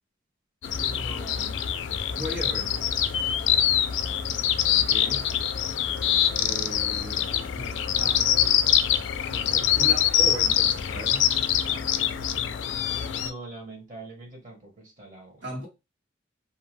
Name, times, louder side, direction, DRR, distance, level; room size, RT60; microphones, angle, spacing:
sound 1, 0.6-13.3, left 10 dB, 80° left, 0.3 m, -24 dB
voice 1, 0.7-1.6 2.2-2.4 3.5-4.0 13.2-15.4, right 2 dB, 45° right, 1.1 m, -44 dB
voice 2, 2.1-2.7 4.7-5.3 6.4-7.3 7.5-8.3 9.3-11.3 15.4-15.7, equal, 80° right, 1.5 m, -37 dB
2.7 x 2.2 x 3.0 m
head